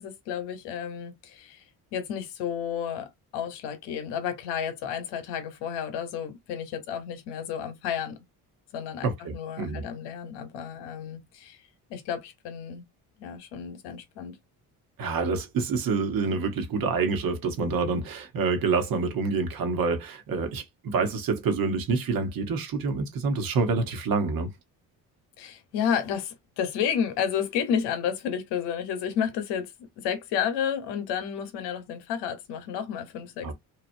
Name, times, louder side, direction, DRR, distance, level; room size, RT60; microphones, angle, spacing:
voice 1, 0.0-1.6 1.9-8.2 8.7-11.6 11.9-12.8 13.2-14.4 25.4-33.5, left 8 dB, 90° left, 0.9 m, -31 dB
voice 2, 9.0-9.8 15.0-24.5 33.4-33.5, right 4 dB, 60° right, 1.2 m, -27 dB
2.9 x 2.3 x 2.6 m
supercardioid pair, 75°, 40 cm